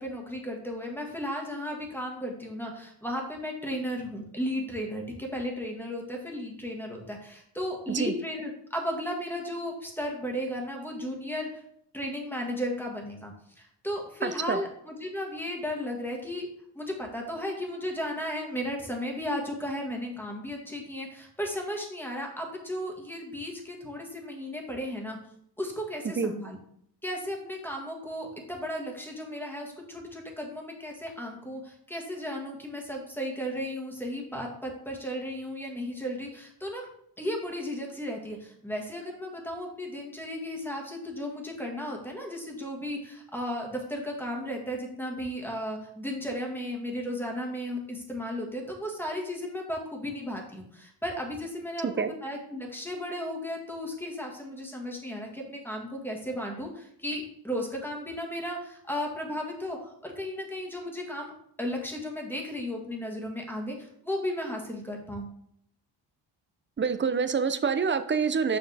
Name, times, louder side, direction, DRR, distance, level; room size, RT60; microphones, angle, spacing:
voice 1, 0.0-11.5 11.9-16.5 16.7-25.2 25.6-26.6 27.0-36.9 37.2-61.3 61.6-65.3, equal, 5° left, 0 dB, 1.7 m, -35 dB
voice 2, 14.2-14.6 26.2-26.3 51.8-52.1 66.8-68.6, right 6 dB, 25° right, 10 dB, 0.6 m, -26 dB
7.1 x 5.6 x 3.4 m, 0.70 s
cardioid pair, 95°, 43 cm